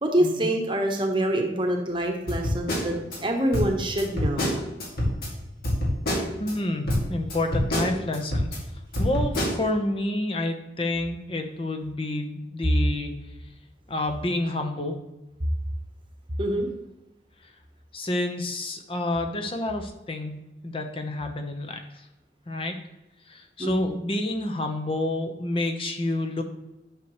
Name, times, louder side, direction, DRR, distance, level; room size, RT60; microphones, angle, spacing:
voice 1, 0.0-2.9 3.2-4.6 16.4-16.7 23.6-23.9, right 1 dB, 25° right, 2 dB, 1.1 m, -25 dB
sound 1, 2.3-3.2 3.5-5.3 5.6-6.5 6.9-8.6 8.9-9.6, left 1 dB, 55° left, 2.3 m, -26 dB
voice 2, 6.4-8.5 9.0-13.5 13.9-15.0 17.4-17.5 17.9-20.3 20.6-22.1 22.5-22.8 23.3-26.4, left 1 dB, 30° left, 4 dB, 0.9 m, -29 dB
10.5 x 6.5 x 3.1 m, 0.96 s
head